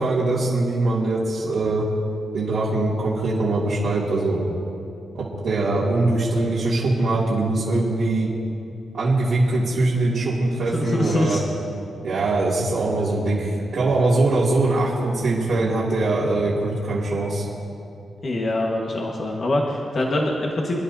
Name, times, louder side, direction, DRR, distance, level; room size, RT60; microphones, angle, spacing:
voice 1, 0.0-1.9 2.3-4.4 5.1-8.3 8.9-11.4 12.0-17.4, right 2 dB, 75° right, -9 dB, 2.7 m, -22 dB
voice 2, 10.7-11.4 18.2-20.8, left 1 dB, 50° left, -2 dB, 1.6 m, -24 dB
27.5 x 11.0 x 2.8 m, 2.7 s
cardioid pair, 100°, 0 cm